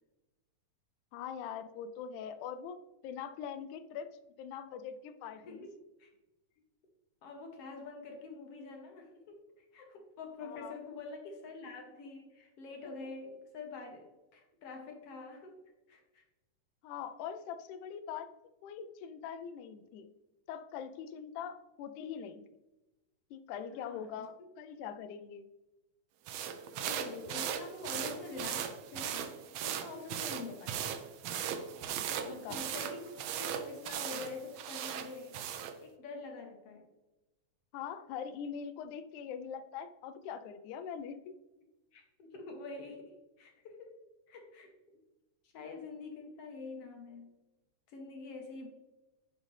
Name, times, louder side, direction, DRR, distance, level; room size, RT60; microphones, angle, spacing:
voice 1, 1.1-2.8 3.0-4.1 4.4-5.7 10.4-10.8 16.8-18.3 18.6-20.1 20.5-22.4 23.3-25.5 32.2-32.6 37.7-41.3, left 7 dB, 80° left, 10 dB, 2.0 m, -42 dB
voice 2, 5.3-5.7 6.0-6.1 7.2-15.6 15.9-16.2 23.7-24.3 26.8-29.3 29.6-30.9 32.3-35.4 35.8-36.8 41.9-44.7 45.5-47.3 47.9-48.7, left 3 dB, 60° left, 2 dB, 1.8 m, -46 dB
sound 1, 26.3-35.8, right 9 dB, 80° right, 1.5 m, -38 dB
10.5 x 5.0 x 3.2 m, 1.0 s
omnidirectional pair, 3.5 m